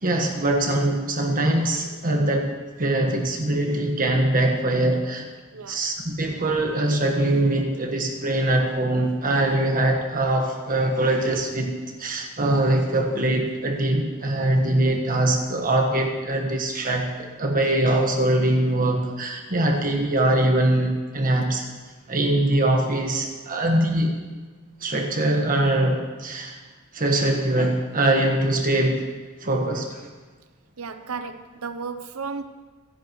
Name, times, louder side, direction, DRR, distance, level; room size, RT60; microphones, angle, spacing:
voice 1, 0.0-2.5 2.8-5.3 5.7-11.7 12.0-21.7 22.1-24.1 24.8-26.6 26.9-29.0 29.4-30.0, right 1 dB, 40° right, 2 dB, 1.4 m, -22 dB
voice 2, 30.8-32.4, right 5 dB, 70° right, 8 dB, 0.7 m, -34 dB
24.5 x 11.0 x 3.1 m, 1.3 s
head